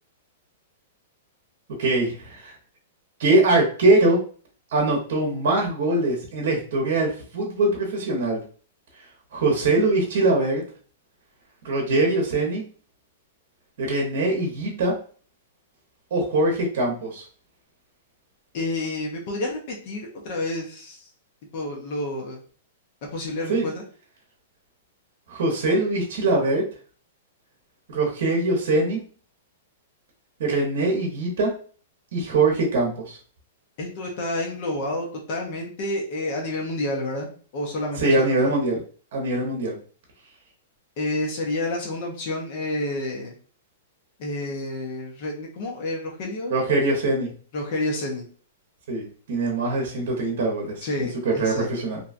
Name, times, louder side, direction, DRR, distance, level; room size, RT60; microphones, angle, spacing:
voice 1, 1.8-2.5 3.2-4.2 4.7-8.4 9.3-10.6 11.6-12.6 13.8-14.9 16.1-17.2 23.5-23.7 25.3-26.6 27.9-29.0 30.4-31.5 32.1-33.2 38.0-38.8 39.1-39.8 46.5-47.3 48.9-52.0, right 2 dB, 65° right, 0 dB, 0.7 m, -22 dB
voice 2, 18.5-21.1 21.5-22.4 23.1-23.8 33.8-38.4 41.0-43.3 44.2-46.5 47.5-48.2 50.8-51.7, left 2 dB, 45° left, 0 dB, 0.6 m, -29 dB
2.6 x 2.2 x 2.5 m, 0.42 s
hypercardioid pair, 155°, 0 cm